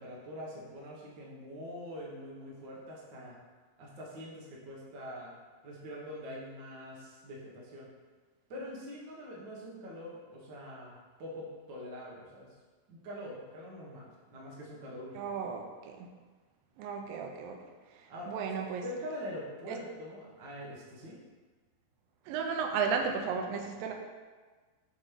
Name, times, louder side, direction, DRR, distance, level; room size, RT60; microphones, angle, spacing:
voice 1, 0.0-3.3 3.8-5.3 5.6-7.9 8.5-12.5 12.9-15.3 18.1-18.3 18.8-21.2, equal, 60° right, -5 dB, 1.2 m, -44 dB
voice 2, 15.1-16.1 16.8-17.6 17.9-18.8 19.7-19.8 22.3-23.9, right 5 dB, 85° right, 3 dB, 2.3 m, -34 dB
8.3 x 3.1 x 5.0 m, 1.4 s
omnidirectional pair, 4.0 m